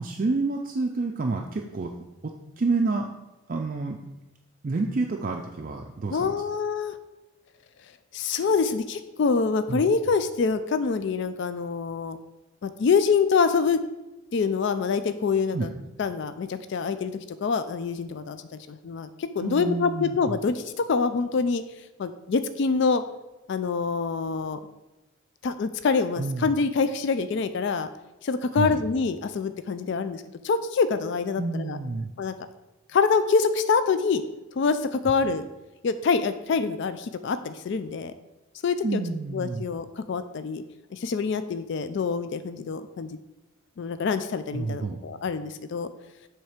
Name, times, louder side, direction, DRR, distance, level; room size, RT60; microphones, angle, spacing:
voice 1, 0.0-1.9 2.2-3.1 3.5-4.0 4.6-6.4 9.7-9.8 15.5-15.7 19.4-20.4 26.2-26.5 28.5-28.8 31.4-32.1 38.8-39.6 44.5-45.0, right 3 dB, 40° right, 2 dB, 0.4 m, -29 dB
voice 2, 6.1-7.0 8.1-12.2 12.6-13.8 14.3-15.7 16.0-17.1 17.4-18.4 18.7-21.6 22.0-23.0 23.5-24.6 25.4-27.9 28.2-31.8 32.2-32.3 32.9-34.2 34.6-35.5 35.8-38.1 38.6-39.0 39.3-40.6 40.9-43.2 43.8-45.9, left 5 dB, 55° left, 11 dB, 0.3 m, -25 dB
7.2 x 3.4 x 4.9 m, 1.0 s
head